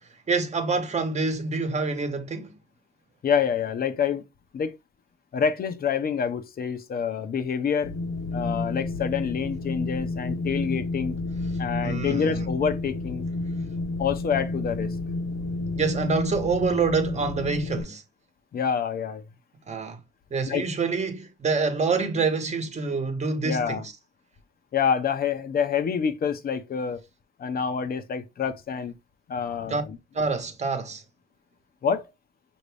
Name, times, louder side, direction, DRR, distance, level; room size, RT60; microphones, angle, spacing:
voice 1, 0.3-2.5 11.8-12.4 15.7-18.0 19.7-20.0 20.3-23.8 29.7-29.8 30.1-31.0, right 4 dB, 35° right, 1.1 m, -26 dB
voice 2, 3.2-4.2 4.5-4.8 5.3-7.9 8.3-11.2 11.6-13.3 14.0-14.9 18.5-19.2 20.5-20.6 23.4-23.8 24.7-27.0 27.4-28.9 29.3-30.0 31.8-32.1, left 7 dB, 50° left, 0.7 m, -27 dB
Wind, 7.8-17.8, left 2 dB, 80° left, 1.2 m, -30 dB
5.8 x 2.7 x 3.3 m
cardioid pair, 90°, 20 cm